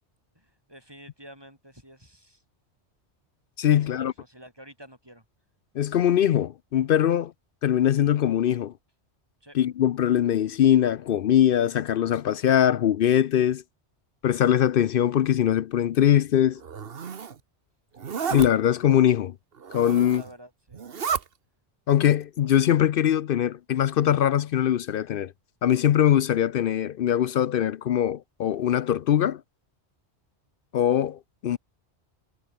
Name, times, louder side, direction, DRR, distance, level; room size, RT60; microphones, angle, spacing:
voice 1, 0.3-2.4 3.7-5.2 9.4-9.6 19.9-20.8, equal, 20° right, 8.0 m, -49 dB
voice 2, 3.6-4.1 5.8-7.3 7.6-8.7 9.5-13.6 14.2-16.6 18.3-19.3 19.7-20.2 21.9-25.3 25.6-29.4 30.7-31.6, left 10 dB, 60° left, 0.7 m, -22 dB
Zipper (clothing), 16.6-17.4 18.0-18.5 19.6-20.3 20.7-21.2, right 6 dB, 55° right, 1.3 m, -32 dB
omnidirectional pair, 1.2 m